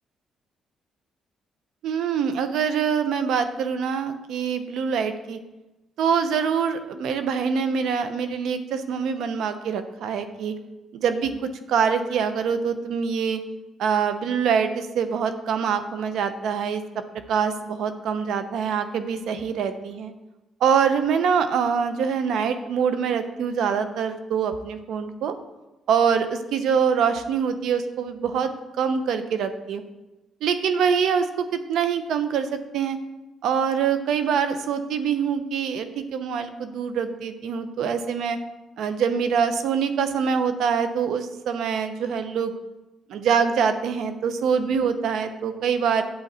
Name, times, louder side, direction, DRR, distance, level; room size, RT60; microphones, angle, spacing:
voice 1, 1.8-5.4 6.0-10.5 10.9-13.4 13.8-16.8 17.3-20.1 20.6-25.3 25.9-28.5 28.8-29.8 30.4-33.0 33.4-38.4 38.8-42.5 43.1-46.0, right 6 dB, 80° right, 9 dB, 0.8 m, -24 dB
8.7 x 7.9 x 4.2 m, 1.0 s
cardioid pair, 90°, 0 cm